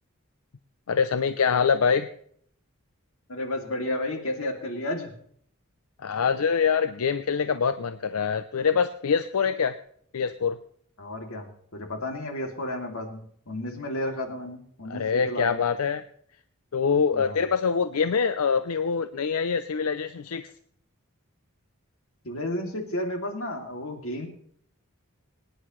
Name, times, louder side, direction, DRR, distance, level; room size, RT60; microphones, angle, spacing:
voice 1, 0.9-2.1 6.0-9.7 10.1-10.6 14.9-16.0 16.7-20.5, left 6 dB, 90° left, 11 dB, 0.6 m, -24 dB
voice 2, 3.3-5.1 11.0-15.6 17.1-17.4 22.2-24.3, left 1 dB, 70° left, 3 dB, 2.6 m, -32 dB
23.5 x 10.0 x 3.2 m, 0.63 s
head